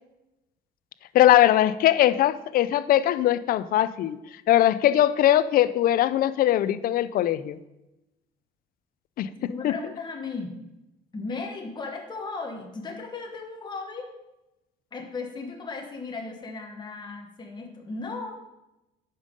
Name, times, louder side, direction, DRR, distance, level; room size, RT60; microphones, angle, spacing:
voice 1, 1.1-4.2 4.5-7.6 9.2-9.3 9.6-9.7, left 12 dB, 60° left, 16 dB, 0.4 m, -20 dB
voice 2, 9.4-10.6 11.1-14.1 14.9-18.4, left 4 dB, 25° left, 2 dB, 1.1 m, -36 dB
8.9 x 5.4 x 5.1 m, 0.97 s
cardioid pair, 110°, 17 cm